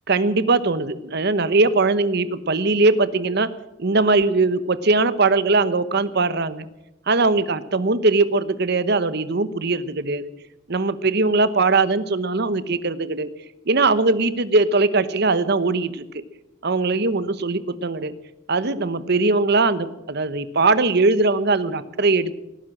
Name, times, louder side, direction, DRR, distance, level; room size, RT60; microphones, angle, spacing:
voice 1, 0.1-3.5 3.8-6.7 7.1-10.3 10.7-13.3 13.7-16.0 16.6-18.1 18.5-22.3, right 3 dB, 60° right, 14 dB, 1.0 m, -20 dB
18.5 x 10.5 x 7.6 m, 0.98 s
head